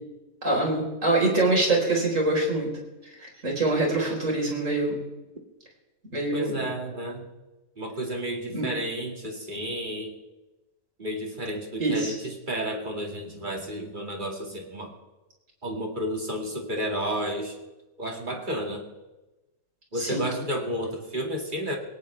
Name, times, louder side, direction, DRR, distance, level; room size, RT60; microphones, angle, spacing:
voice 1, 0.4-2.7 3.2-5.0 6.1-6.6 8.5-8.7 11.8-12.1 19.9-20.2, right 2 dB, 45° right, -1 dB, 4.7 m, -24 dB
voice 2, 6.3-7.3 7.8-10.1 11.0-14.9 15.6-17.5 18.0-18.8 19.9-21.8, equal, 30° right, 2 dB, 2.3 m, -31 dB
20.0 x 18.5 x 3.4 m, 1.1 s
omnidirectional pair, 1.8 m